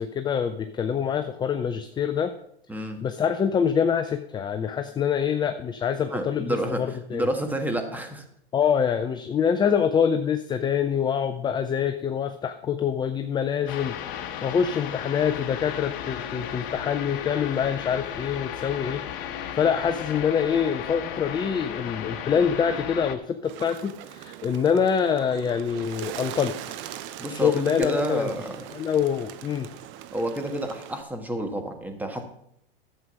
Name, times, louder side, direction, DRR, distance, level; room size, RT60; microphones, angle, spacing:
voice 1, 0.0-2.3 3.0-7.3 8.5-26.6 27.3-28.3 28.7-29.7, left 7 dB, 15° left, 9 dB, 0.5 m, -25 dB
voice 2, 6.1-8.2 27.2-28.6 30.1-32.2, right 1 dB, 5° right, 5 dB, 1.5 m, -29 dB
sound 1, 13.7-23.2, left 9 dB, 60° left, 1.2 m, -35 dB
Bird, 23.4-31.0, right 11 dB, 40° right, 0.8 m, -40 dB
11.0 x 7.6 x 5.3 m, 0.73 s
hypercardioid pair, 105°, 31 cm